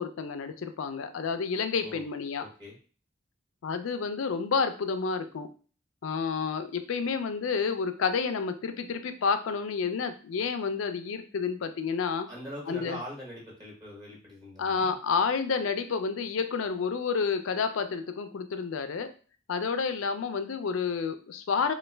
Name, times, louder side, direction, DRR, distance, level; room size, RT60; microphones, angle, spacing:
voice 1, 0.0-2.4 3.6-5.5 6.0-12.3 12.7-13.0 14.6-19.1 19.5-21.7, left 5 dB, 80° left, 8 dB, 0.4 m, -30 dB
voice 2, 2.4-2.8 12.3-14.9, equal, 20° right, -4 dB, 1.0 m, -42 dB
3.1 x 2.2 x 3.3 m, 0.38 s
head